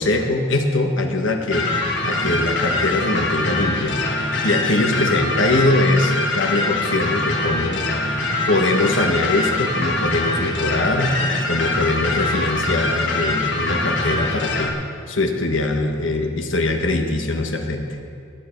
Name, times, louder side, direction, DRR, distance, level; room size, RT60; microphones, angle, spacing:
voice 1, 0.0-1.7 2.0-4.0 4.4-7.9 8.4-11.1 11.5-14.7 15.1-18.0, left 2 dB, 85° left, 4 dB, 1.4 m, -22 dB
sound 1, 1.5-14.7, left 2 dB, 65° left, 1.6 m, -23 dB
19.5 x 10.0 x 4.6 m, 2.4 s
head